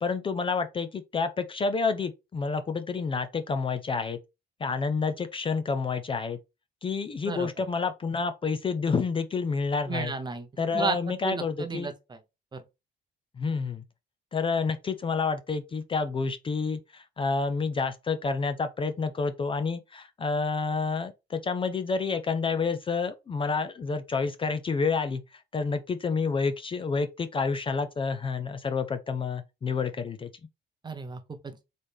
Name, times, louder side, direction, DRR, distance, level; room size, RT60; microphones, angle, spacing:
voice 1, 0.0-4.2 4.6-6.4 6.8-10.1 10.6-11.9 13.4-13.8 14.3-30.3, left 4 dB, 30° left, 0.4 m, -29 dB
voice 2, 9.9-12.2 12.5-12.6 30.8-31.7, right 4 dB, 25° right, 0.8 m, -34 dB
4.1 x 3.2 x 3.4 m
cardioid pair, 120°, 18 cm